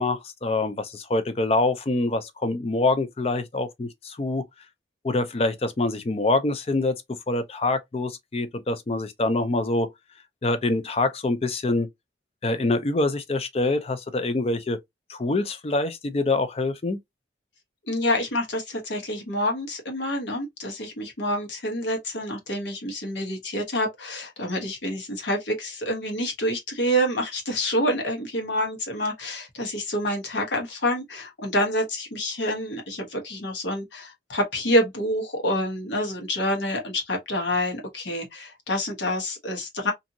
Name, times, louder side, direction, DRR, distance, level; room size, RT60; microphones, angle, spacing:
voice 1, 0.0-4.4 5.0-9.9 10.4-11.9 12.4-14.8 15.1-17.0, left 2 dB, 35° left, 0.4 m, -25 dB
voice 2, 17.9-39.9, equal, 75° left, 1.0 m, -27 dB
2.7 x 2.6 x 2.6 m
head